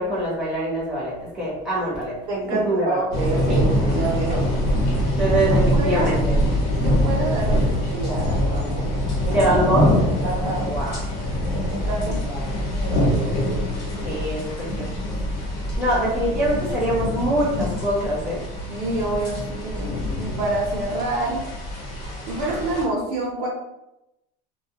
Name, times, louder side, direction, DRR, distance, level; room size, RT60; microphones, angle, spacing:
voice 1, 0.0-2.1 2.5-3.0 3.5-3.6 5.2-6.2 9.3-9.9 10.6-11.0 12.0-12.6 14.0-14.9 15.8-18.4 22.4-22.6, right 1 dB, 5° right, -7 dB, 0.9 m, -24 dB
voice 2, 2.3-4.5 5.5-6.2 6.8-9.0 9.2-9.5 10.2-10.7 11.7-12.2 12.5-13.3 18.7-21.4 22.3-23.5, right 2 dB, 60° right, -2 dB, 0.7 m, -28 dB
sound 1, 3.1-22.8, left 1 dB, 55° left, 1.0 m, -24 dB
sound 2, 8.0-17.8, equal, 30° left, 0.6 m, -33 dB
2.3 x 2.2 x 2.8 m, 0.90 s
cardioid pair, 160°, 20 cm